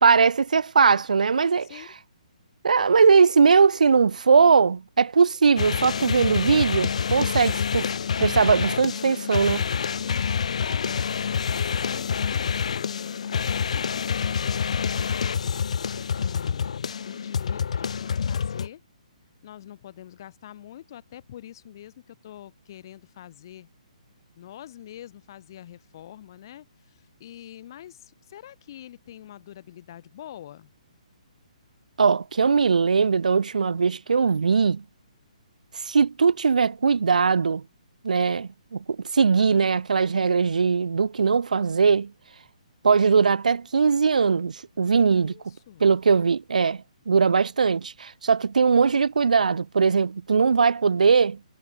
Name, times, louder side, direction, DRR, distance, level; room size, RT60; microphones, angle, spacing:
voice 1, 0.0-1.7 2.6-7.9 8.2-9.6 32.0-34.8 35.8-37.6 38.0-42.1 42.8-45.3 45.8-51.4, right 5 dB, 85° right, 1.1 m, -20 dB
voice 2, 1.6-1.9 9.9-15.6 16.2-18.8 19.4-23.7 24.4-30.7 45.0-45.9, left 11 dB, 30° left, 7.2 m, -45 dB
sound 1, 5.6-18.7, left 6 dB, 60° left, 0.5 m, -27 dB
hypercardioid pair, 175°, 4 cm